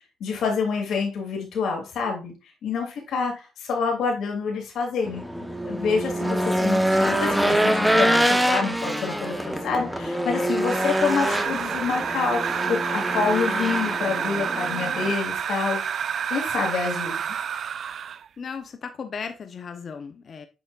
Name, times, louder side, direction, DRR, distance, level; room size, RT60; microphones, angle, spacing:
voice 1, 0.2-2.3 2.6-15.8 16.3-17.2, left 5 dB, 70° left, 2.8 m, -27 dB
Race car auto racing / Engine, 5.1-15.1, equal, 5° right, 1.1 m, -25 dB
sound 1, 10.6-18.3, right 8 dB, 60° right, 0.3 m, -29 dB
voice 2, 18.4-20.5, left 6 dB, 50° left, 0.9 m, -36 dB
8.0 x 5.3 x 2.5 m
cardioid pair, 90°, 0 cm